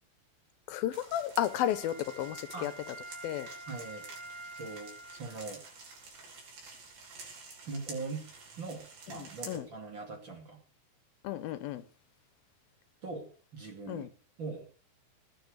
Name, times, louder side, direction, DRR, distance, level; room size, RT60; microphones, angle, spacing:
voice 1, 0.7-2.7 3.2-3.5 9.2-9.7 11.2-11.8 13.9-14.1, left 11 dB, 80° left, 2.9 m, -33 dB
sound 1, 0.9-9.6, right 4 dB, 80° right, 6.3 m, -50 dB
Wind instrument woodwind instrument, 1.3-5.6 6.1-6.2, right 2 dB, 5° left, 3.4 m, -47 dB
voice 2, 3.7-4.1 4.5-5.6 7.7-8.2 8.5-10.6 13.0-14.1 14.4-14.7, right 3 dB, 35° right, 2.7 m, -41 dB
19.0 x 10.0 x 6.5 m
omnidirectional pair, 4.2 m